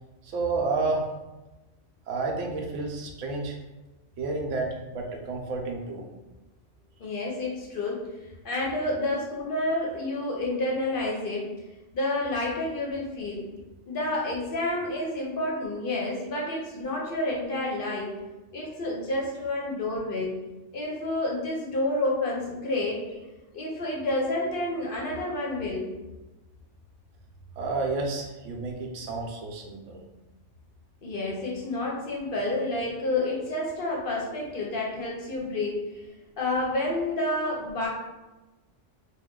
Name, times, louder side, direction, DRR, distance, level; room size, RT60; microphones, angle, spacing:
voice 1, 0.2-1.1 2.1-3.6 4.2-6.0 27.6-30.0, right 3 dB, 80° right, 1 dB, 0.9 m, -30 dB
voice 2, 7.0-8.1 8.4-11.5 11.9-13.5 13.9-18.2 18.5-20.4 20.7-23.2 23.5-25.9 31.0-35.8 36.4-37.9, left 2 dB, 55° left, -2 dB, 0.7 m, -29 dB
2.5 x 2.2 x 3.6 m, 1.1 s
omnidirectional pair, 1.2 m